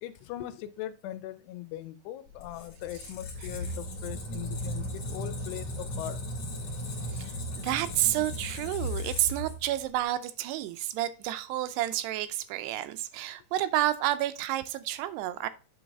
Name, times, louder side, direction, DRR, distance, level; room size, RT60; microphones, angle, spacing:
voice 1, 0.0-6.2, left 13 dB, 85° left, 2.7 m, -40 dB
Squeak, 2.3-10.0, left 1 dB, 50° left, 2.8 m, -36 dB
voice 2, 7.1-15.5, right 14 dB, 85° right, 2.6 m, -30 dB
8.5 x 4.0 x 3.4 m
omnidirectional pair, 4.7 m